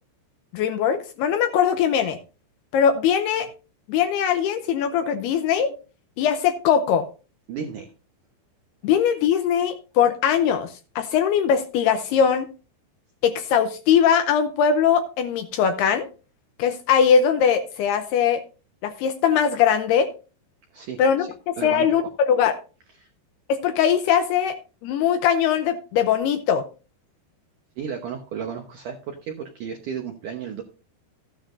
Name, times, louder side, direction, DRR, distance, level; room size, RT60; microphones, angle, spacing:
voice 1, 0.5-2.2 2.7-3.5 3.9-5.7 6.2-7.1 8.8-12.5 13.2-16.1 16.6-18.4 18.8-20.1 21.0-22.6 23.5-26.6, left 8 dB, 80° left, 8 dB, 2.5 m, -21 dB
voice 2, 7.5-7.9 20.7-21.3 21.6-22.1 23.0-23.1 27.8-30.6, right 7 dB, 75° right, 3 dB, 1.8 m, -33 dB
14.5 x 9.9 x 2.6 m, 0.34 s
omnidirectional pair, 5.2 m